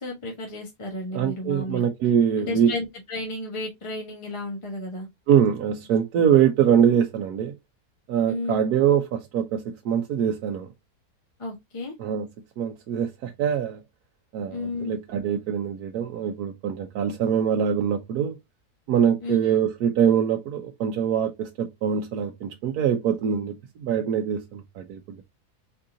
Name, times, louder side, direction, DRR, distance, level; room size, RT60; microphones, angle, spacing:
voice 1, 0.0-1.9 2.4-5.1 8.3-8.6 11.4-11.9 14.5-15.0 19.2-19.4, left 2 dB, 20° left, 1.1 m, -33 dB
voice 2, 1.1-2.7 5.3-7.5 8.1-10.7 12.0-12.3 12.6-13.8 14.3-18.4 18.9-25.0, right 8 dB, 80° right, 1.2 m, -23 dB
4.6 x 3.7 x 2.6 m
omnidirectional pair, 1.6 m